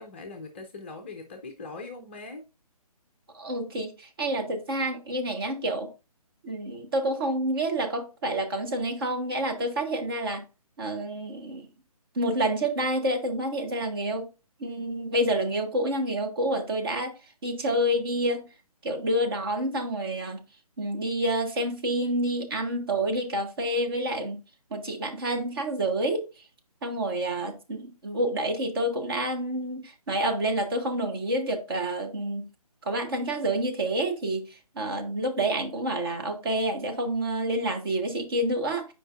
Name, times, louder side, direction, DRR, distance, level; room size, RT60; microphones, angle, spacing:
voice 1, 0.0-2.4, left 3 dB, 20° left, 0.5 m, -41 dB
voice 2, 3.3-5.9 6.4-10.4 10.8-11.7 12.1-14.3 14.6-17.1 17.4-18.5 18.8-20.4 20.8-24.4 24.7-26.3 26.8-32.5 32.8-38.9, right 1 dB, 35° right, 1.2 m, -28 dB
7.6 x 5.0 x 2.5 m
figure-of-eight pair, 145°, 20 cm